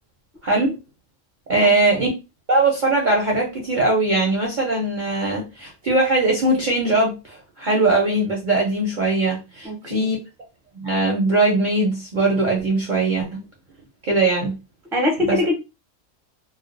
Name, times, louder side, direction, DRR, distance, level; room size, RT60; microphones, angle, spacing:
voice 1, 1.5-2.1 2.5-10.2 10.7-13.4 14.0-14.6 15.2-15.4, right 2 dB, 55° right, 0.5 m, -20 dB
voice 2, 9.6-10.1 14.9-15.5, left 2 dB, 5° right, 0.4 m, -22 dB
2.3 x 2.2 x 2.4 m
omnidirectional pair, 1.3 m